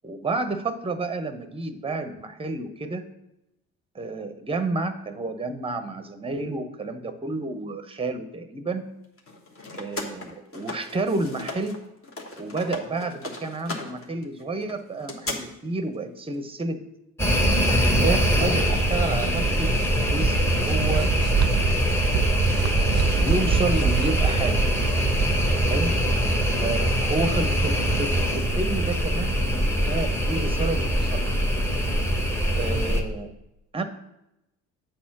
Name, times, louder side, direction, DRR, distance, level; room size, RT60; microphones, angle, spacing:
voice 1, 0.0-3.1 3.9-8.9 9.7-11.8 12.4-16.9 17.6-19.8 20.1-21.6 22.7-24.6 25.7-25.9 26.6-31.2 32.5-33.3 33.7-33.8, right 2 dB, 15° right, 9 dB, 0.8 m, -30 dB
sound 1, 9.2-11.8 12.0-15.4, left 2 dB, 30° left, 1.5 m, -36 dB
sound 2, 17.2-33.0, equal, 5° left, 1.1 m, -23 dB
sound 3, 18.6-25.4, right 9 dB, 40° right, 0.5 m, -28 dB
7.9 x 4.2 x 5.8 m, 0.89 s
figure-of-eight pair, 50°, 41 cm